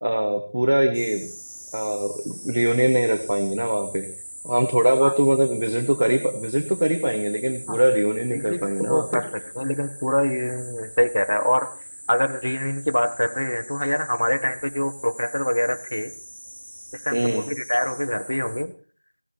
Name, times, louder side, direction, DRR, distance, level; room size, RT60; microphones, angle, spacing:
voice 1, 0.0-1.3 1.7-4.1 4.4-9.2 17.1-17.4, right 1 dB, 25° right, 4 dB, 0.9 m, -22 dB
sound 1, 0.9-18.6, equal, 40° right, 3.1 m, -41 dB
voice 2, 8.3-11.7 12.1-16.1 16.9-18.7, left 1 dB, 30° left, 8 dB, 1.1 m, -24 dB
16.5 x 14.0 x 4.6 m, 0.41 s
figure-of-eight pair, 180°, 0 cm